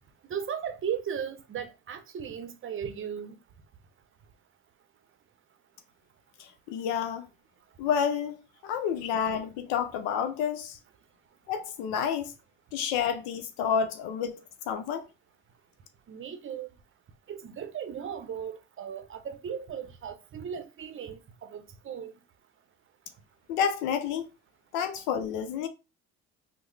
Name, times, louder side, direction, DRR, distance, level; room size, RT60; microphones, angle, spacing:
voice 1, 0.2-3.4 7.7-7.8 11.3-11.4 16.1-16.8 17.3-22.2, right 8 dB, 40° right, 0.6 m, -37 dB
voice 2, 6.4-7.3 7.8-8.4 8.6-10.8 11.5-12.3 12.7-15.1 23.5-24.3 24.7-25.7, left 7 dB, 80° left, 0.5 m, -29 dB
3.5 x 2.0 x 3.2 m
supercardioid pair, 65°, 32 cm